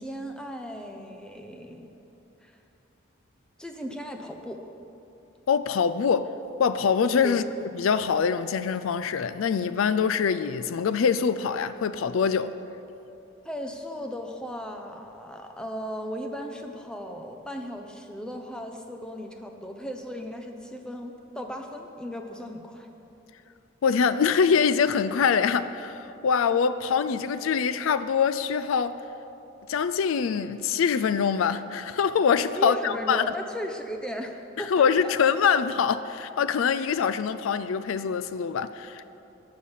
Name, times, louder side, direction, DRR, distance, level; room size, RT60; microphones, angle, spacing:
voice 1, 0.0-1.9 2.4-2.6 3.6-4.6 7.2-7.5 13.4-22.9 32.5-35.2 36.9-37.0, equal, 5° left, 0.8 m, -36 dB
voice 2, 5.5-6.3 6.6-12.5 23.8-29.0 29.7-33.2 34.6-39.1, left 6 dB, 80° left, 0.4 m, -24 dB
14.5 x 10.0 x 5.6 m
head